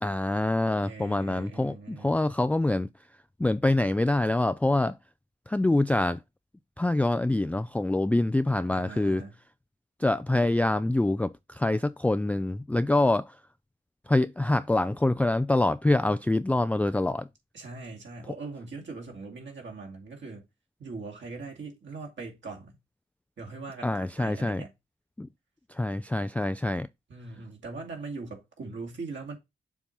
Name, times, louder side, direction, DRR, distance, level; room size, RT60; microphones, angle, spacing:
voice 1, 0.0-2.9 3.4-5.0 5.5-6.2 6.8-9.2 10.0-13.3 14.1-17.3 23.8-24.6 25.2-25.3 25.7-26.9, left 2 dB, 5° left, 0.3 m, -25 dB
voice 2, 0.8-2.2 8.7-9.4 17.5-20.5 20.8-22.7 23.4-24.7 27.1-29.4, right 3 dB, 65° right, 2.4 m, -41 dB
7.0 x 2.9 x 5.3 m
supercardioid pair, 40°, 21 cm